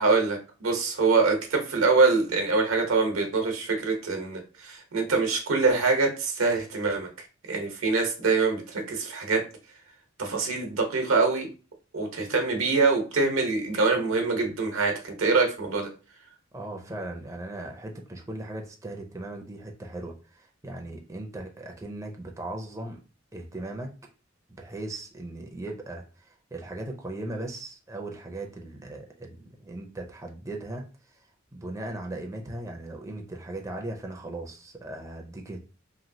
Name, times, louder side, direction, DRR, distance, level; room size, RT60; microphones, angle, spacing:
voice 1, 0.0-7.1 7.5-9.4 10.2-11.5 11.9-15.9, right 4 dB, 85° right, 3 dB, 0.8 m, -24 dB
voice 2, 16.5-23.0 23.3-23.9 24.5-31.3 31.5-35.6, right 2 dB, 15° right, 2 dB, 0.4 m, -38 dB
3.0 x 2.7 x 2.6 m, 0.34 s
head